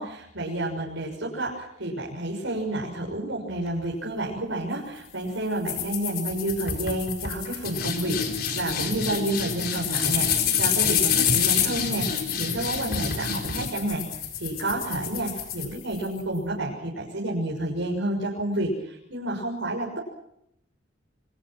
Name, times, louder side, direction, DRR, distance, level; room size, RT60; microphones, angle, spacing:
voice 1, 0.0-14.1 14.4-20.0, right 1 dB, 90° right, -2 dB, 6.4 m, -30 dB
sound 1, 5.7-16.2, left 7 dB, 50° left, 4.5 m, -27 dB
29.0 x 24.5 x 6.2 m, 0.77 s
head